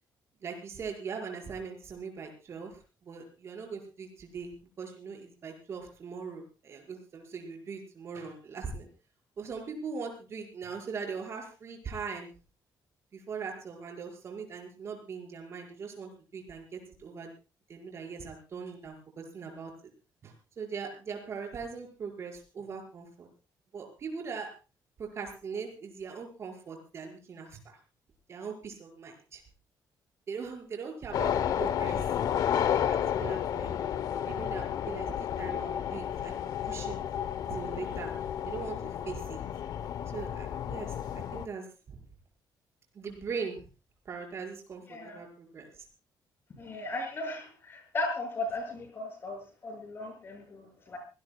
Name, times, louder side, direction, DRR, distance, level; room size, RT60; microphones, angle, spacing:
voice 1, 0.4-8.9 9.4-12.3 13.1-17.3 17.7-19.7 20.2-23.3 23.7-24.5 25.0-27.8 28.3-29.4 30.3-32.1 32.5-33.8 34.3-37.0 37.5-38.1 38.4-39.4 40.1-42.0 42.9-43.6 44.1-45.8, right 5 dB, 35° right, 2 dB, 5.4 m, -40 dB
sound 1, 31.1-41.5, left 9 dB, 60° left, 0.9 m, -32 dB
voice 2, 44.9-45.2 46.6-51.0, left 2 dB, 30° left, 4 dB, 6.6 m, -36 dB
25.5 x 18.0 x 2.3 m, 0.33 s
cardioid pair, 175°, 8 cm